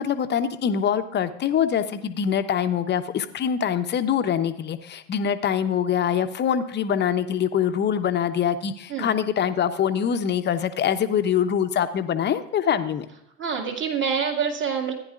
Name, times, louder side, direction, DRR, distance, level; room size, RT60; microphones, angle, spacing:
voice 1, 0.0-13.1, left 8 dB, 30° left, 9 dB, 0.9 m, -24 dB
voice 2, 13.4-14.9, right 6 dB, 30° right, 2 dB, 2.2 m, -26 dB
15.0 x 10.0 x 2.5 m, 0.83 s
hypercardioid pair, 90°, 37 cm